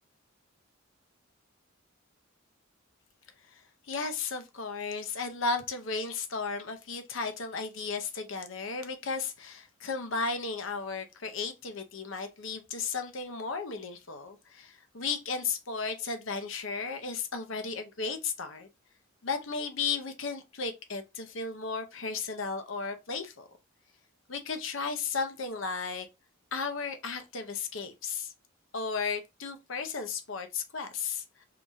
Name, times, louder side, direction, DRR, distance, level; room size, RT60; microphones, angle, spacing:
voice 1, 3.9-18.7 19.2-23.5 24.3-26.1 26.5-28.3 28.7-31.5, left 4 dB, 75° left, 0.8 m, -34 dB
4.7 x 2.7 x 3.6 m
head